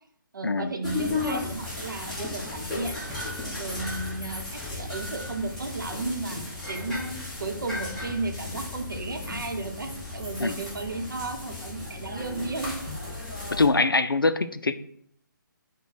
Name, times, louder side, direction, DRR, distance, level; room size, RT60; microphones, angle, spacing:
voice 1, 0.3-3.0 3.4-6.4 6.7-12.8, right 3 dB, 65° right, 4 dB, 0.8 m, -34 dB
Supermarket inside, 0.8-13.7, left 3 dB, ahead, 1.0 m, -35 dB
voice 2, 13.5-14.8, left 3 dB, 85° left, 12 dB, 0.4 m, -23 dB
5.8 x 2.2 x 4.1 m, 0.68 s
figure-of-eight pair, 145°, 11 cm